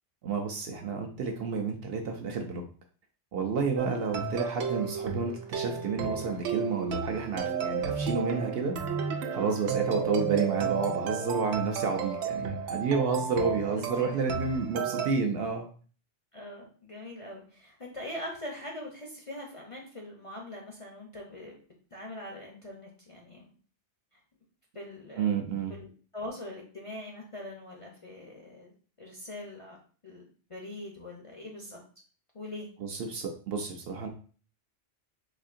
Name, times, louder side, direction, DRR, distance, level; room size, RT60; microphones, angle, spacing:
voice 1, 0.2-2.6 3.3-8.7 9.3-15.7 25.1-25.7 32.8-34.1, right 5 dB, 65° right, 3 dB, 0.7 m, -30 dB
sound 1, 3.8-15.1, right 6 dB, 90° right, 0.9 m, -33 dB
voice 2, 11.8-12.1 13.7-14.6 16.3-21.6 21.9-23.5 24.7-25.3 25.7-28.7 29.0-29.8 30.0-30.2 30.5-31.8 32.3-32.7, left 1 dB, 40° left, -1 dB, 0.5 m, -42 dB
4.2 x 2.7 x 2.5 m, 0.41 s
omnidirectional pair, 1.2 m